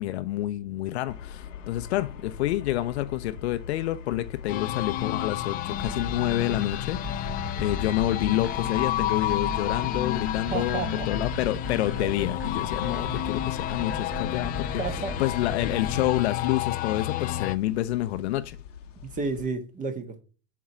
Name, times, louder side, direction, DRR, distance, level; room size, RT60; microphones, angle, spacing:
voice 1, 0.0-14.8 15.2-18.6, left 14 dB, 60° left, 0.7 m, -28 dB
sound 1, 1.1-19.5, left 8 dB, 80° left, 1.0 m, -44 dB
sound 2, 4.5-17.6, left 13 dB, 25° left, 0.4 m, -31 dB
sound 3, 5.8-16.2, equal, 5° right, 0.8 m, -37 dB
voice 2, 10.5-11.1 11.9-12.1 14.8-15.2 19.0-20.2, right 4 dB, 20° right, 1.3 m, -32 dB
7.4 x 4.7 x 4.3 m
hypercardioid pair, 105°, 37 cm